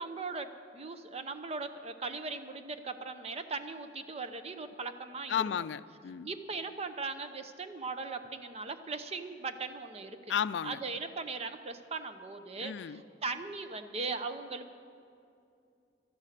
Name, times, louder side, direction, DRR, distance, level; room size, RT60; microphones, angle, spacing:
voice 1, 0.0-5.3 6.2-10.2 10.6-12.9 13.2-14.9, right 4 dB, 35° right, 9 dB, 0.7 m, -39 dB
voice 2, 5.3-6.3 10.3-10.8 12.6-13.0, left 8 dB, 75° left, 15 dB, 0.4 m, -33 dB
13.0 x 11.5 x 6.7 m, 2.5 s
head